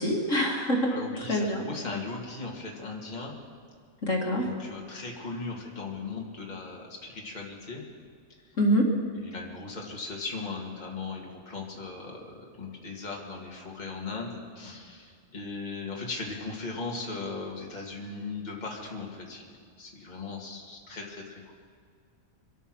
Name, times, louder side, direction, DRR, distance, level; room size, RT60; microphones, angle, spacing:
voice 1, 0.0-0.9 1.3-1.6 4.0-4.5 8.6-8.9, equal, 65° left, -1 dB, 2.5 m, -25 dB
voice 2, 0.9-3.3 4.4-7.8 8.3-8.4 9.1-19.4 19.8-21.5, left 3 dB, 30° left, -2 dB, 2.1 m, -38 dB
24.5 x 9.2 x 6.1 m, 2.2 s
omnidirectional pair, 1.5 m